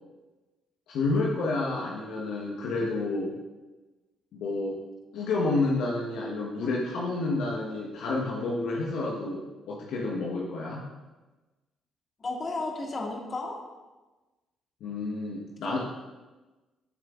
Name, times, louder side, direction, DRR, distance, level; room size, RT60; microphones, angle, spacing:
voice 1, 0.9-3.3 4.3-4.8 5.1-10.8 14.8-15.8, left 3 dB, 65° left, -3 dB, 1.3 m, -29 dB
voice 2, 12.2-13.6 15.6-15.8, left 2 dB, 40° left, 0 dB, 2.1 m, -33 dB
14.5 x 7.6 x 2.5 m, 1.2 s
hypercardioid pair, 45°, 0 cm